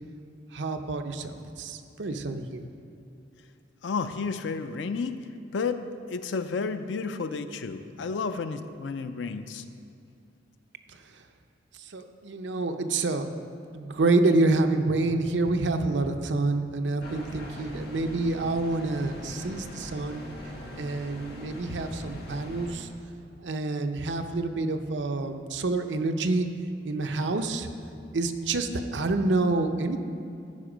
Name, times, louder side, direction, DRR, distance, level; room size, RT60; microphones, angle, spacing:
voice 1, 0.5-2.6 11.9-13.3 13.7-20.2 20.8-22.9 23.4-26.5 26.8-27.7 28.1-30.0, right 2 dB, 75° right, 6 dB, 0.6 m, -27 dB
voice 2, 3.8-5.2 5.5-9.6, left 4 dB, 85° left, 10 dB, 0.5 m, -31 dB
sound 1, 17.0-22.7, left 1 dB, 60° left, 1.5 m, -41 dB
13.5 x 5.2 x 5.0 m, 2.5 s
head